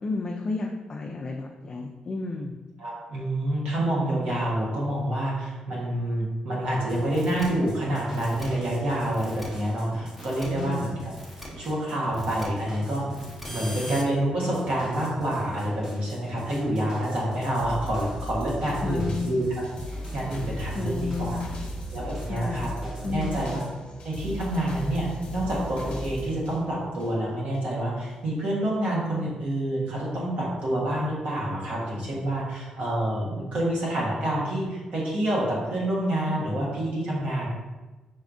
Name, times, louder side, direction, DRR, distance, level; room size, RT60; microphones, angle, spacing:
voice 1, 0.0-2.6 10.4-10.9 18.8-19.4 20.7-21.6 22.3-22.7 23.0-23.5, left 3 dB, 30° left, 0 dB, 0.4 m, -32 dB
voice 2, 2.8-11.1 11.6-13.2 13.5-21.4 21.9-23.6 24.0-37.5, right 1 dB, 65° right, -5 dB, 1.2 m, -28 dB
sound 1, 6.9-23.7, right 1 dB, 25° right, 1.2 m, -43 dB
sound 2, 7.1-7.5 8.1-8.5 9.1-9.5 10.1-10.5 11.1-11.5 12.1-12.5 13.1-14.0, left 1 dB, ahead, 0.9 m, -41 dB
sound 3, 17.6-27.6 28.1-28.2, equal, 50° left, 1.1 m, -37 dB
4.7 x 4.1 x 2.6 m, 1.2 s
cardioid pair, 145°, 2 cm